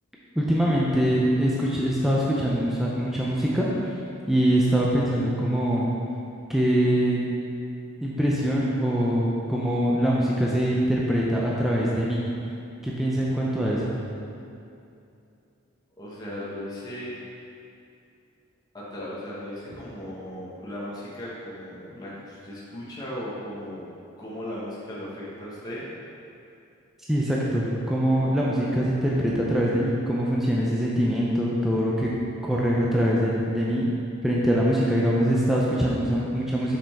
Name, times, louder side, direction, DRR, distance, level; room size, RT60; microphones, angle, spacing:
voice 1, 0.4-3.7 4.3-5.9 6.5-7.2 8.0-12.2 12.8-13.9 27.1-32.1 32.4-33.9 34.2-36.8, equal, ahead, -6 dB, 0.5 m, -23 dB
voice 2, 16.0-17.1 18.7-23.8 24.2-25.9, left 1 dB, 20° left, -8 dB, 1.0 m, -37 dB
5.8 x 5.2 x 3.5 m, 2.6 s
head